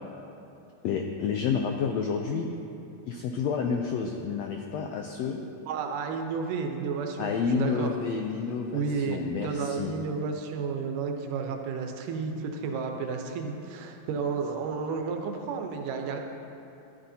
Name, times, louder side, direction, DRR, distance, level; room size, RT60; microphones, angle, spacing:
voice 1, 0.8-2.5 3.1-5.4 7.2-9.9, left 6 dB, 90° left, 3 dB, 1.5 m, -29 dB
voice 2, 5.7-7.9 8.7-16.2, right 5 dB, 90° right, 3 dB, 2.5 m, -32 dB
14.0 x 11.5 x 2.8 m, 2.8 s
omnidirectional pair, 3.6 m